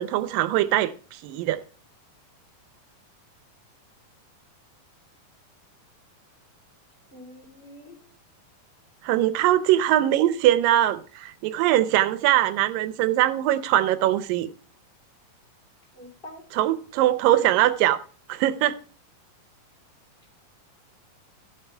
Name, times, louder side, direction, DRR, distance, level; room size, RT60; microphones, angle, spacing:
voice 1, 0.0-1.6 9.0-14.5 16.5-18.0 18.3-18.8, right 13 dB, 80° right, 2.3 m, -22 dB
voice 2, 7.1-8.0 15.9-16.4 17.0-17.1, equal, 15° left, 3.5 m, -45 dB
14.0 x 7.8 x 3.3 m
omnidirectional pair, 4.1 m